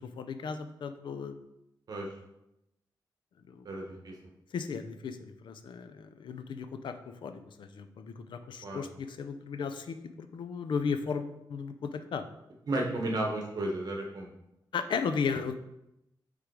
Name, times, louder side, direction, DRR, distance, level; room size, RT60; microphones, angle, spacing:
voice 1, 0.0-1.4 3.5-3.7 4.5-12.3 14.7-15.5, left 5 dB, 75° left, 8 dB, 0.6 m, -35 dB
voice 2, 3.6-4.1 8.6-8.8 12.7-14.3, right 1 dB, 55° right, 0 dB, 1.2 m, -33 dB
6.6 x 3.8 x 4.8 m, 0.86 s
wide cardioid pair, 155°, 8 cm